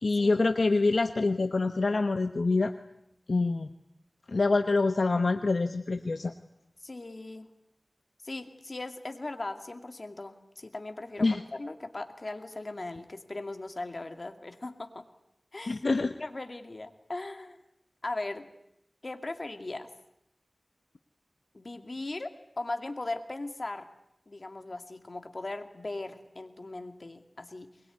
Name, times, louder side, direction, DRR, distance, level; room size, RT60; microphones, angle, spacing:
voice 1, 0.0-2.7 3.3-3.7 4.3-6.3 11.2-11.4 15.7-16.1, left 3 dB, 75° left, 7 dB, 1.1 m, -26 dB
voice 2, 6.8-7.5 8.2-15.1 15.5-15.8 16.2-17.6 18.0-18.5 19.0-19.9 21.5-23.9 24.3-27.7, left 2 dB, 55° left, 7 dB, 2.4 m, -38 dB
22.5 x 22.0 x 9.5 m, 0.79 s
wide cardioid pair, 50°, 0 cm